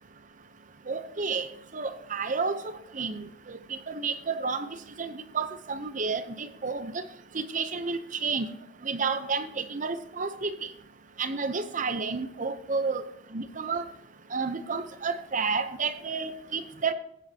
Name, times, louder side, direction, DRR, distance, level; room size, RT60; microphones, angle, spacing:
voice 1, 0.9-1.5 1.7-2.6 2.9-4.7 5.0-7.0 7.3-8.5 8.8-10.7 11.2-13.0 13.3-13.8 14.3-16.9, right 4 dB, 40° right, 11 dB, 0.8 m, -31 dB
16.0 x 9.3 x 2.9 m, 0.76 s
head